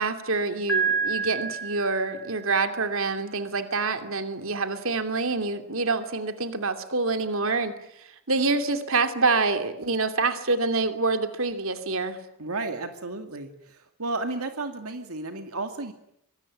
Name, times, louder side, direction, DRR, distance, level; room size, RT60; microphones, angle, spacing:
voice 1, 0.0-7.7 8.3-12.2, right 3 dB, 65° right, 8 dB, 2.8 m, -26 dB
Piano, 0.7-2.6, right 5 dB, 5° left, 5.9 m, -28 dB
voice 2, 12.4-15.9, right 2 dB, 80° right, 6 dB, 2.4 m, -33 dB
25.0 x 24.5 x 9.7 m, 0.78 s
head